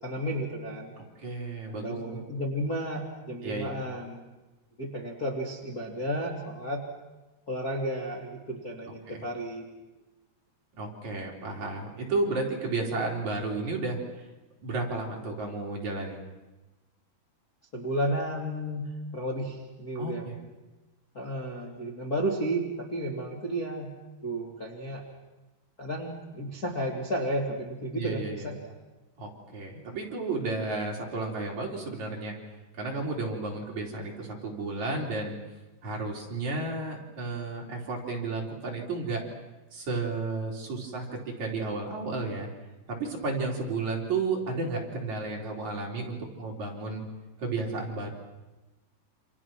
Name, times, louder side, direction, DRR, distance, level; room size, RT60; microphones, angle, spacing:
voice 1, 0.0-0.9 1.7-4.2 4.8-6.8 7.5-9.7 17.7-18.9 19.1-20.3 21.1-23.9 24.2-25.0 25.8-28.7, right 1 dB, 25° left, -2 dB, 2.4 m, -32 dB
voice 2, 1.0-2.2 3.4-3.8 9.1-9.2 10.8-14.0 14.6-16.2 19.9-20.3 27.9-28.4 29.2-32.3 32.7-35.4 35.8-39.2 39.7-42.5 42.9-47.0 47.4-48.1, right 3 dB, 40° right, -2 dB, 4.9 m, -32 dB
29.0 x 28.0 x 6.2 m, 1.1 s
omnidirectional pair, 5.2 m